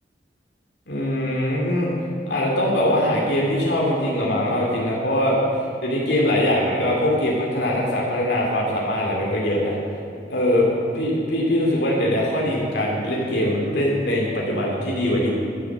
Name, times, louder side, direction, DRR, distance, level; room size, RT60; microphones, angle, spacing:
voice 1, 0.9-1.9 2.3-9.8 10.3-10.7 10.9-15.3, left 1 dB, 70° left, -3 dB, 2.5 m, -22 dB
13.0 x 7.9 x 7.4 m, 2.4 s
head